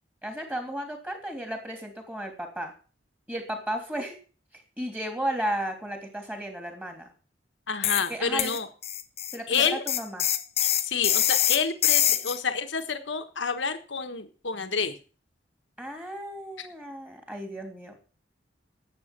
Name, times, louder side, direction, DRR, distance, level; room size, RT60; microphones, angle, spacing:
voice 1, 0.2-2.7 3.3-4.2 4.5-7.1 8.1-8.6 9.3-10.3 15.8-18.0, right 1 dB, 10° right, 4 dB, 3.1 m, -34 dB
voice 2, 7.7-8.7 9.5-9.8 10.8-15.0 16.6-16.7, left 5 dB, 85° left, 8 dB, 1.4 m, -29 dB
sound 1, 7.8-8.1 8.4-12.4, left 11 dB, 35° left, 0.9 m, -24 dB
12.0 x 8.0 x 7.3 m, 0.38 s
head